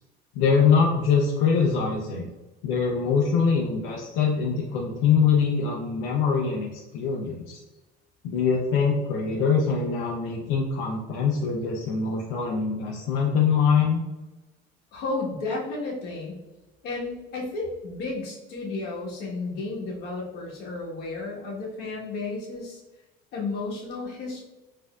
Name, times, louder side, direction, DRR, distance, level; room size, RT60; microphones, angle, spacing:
voice 1, 0.4-2.3 2.6-7.6 8.2-14.0, left 6 dB, 85° left, -1 dB, 0.5 m, -23 dB
voice 2, 14.9-16.4 16.8-22.8 23.3-24.4, left 3 dB, 65° left, -3 dB, 1.2 m, -32 dB
4.2 x 2.7 x 2.3 m, 1.1 s
cardioid pair, 140°, 18 cm